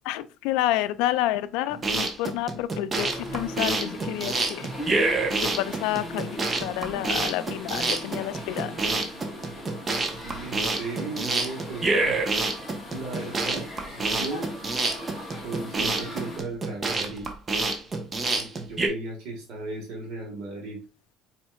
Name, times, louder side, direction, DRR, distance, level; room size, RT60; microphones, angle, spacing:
voice 1, 0.1-4.7 5.4-8.7, left 14 dB, 80° left, 0.3 m, -29 dB
sound 1, 1.7-18.9, right 3 dB, 30° right, 0.8 m, -27 dB
sound 2, 3.0-16.4, equal, 5° left, 2.2 m, -39 dB
voice 2, 10.1-12.2 12.9-13.7 13.9-14.5 15.4-17.3 18.4-20.8, right 3 dB, 70° right, 1.5 m, -36 dB
4.3 x 4.3 x 2.3 m
supercardioid pair, 105°, 0 cm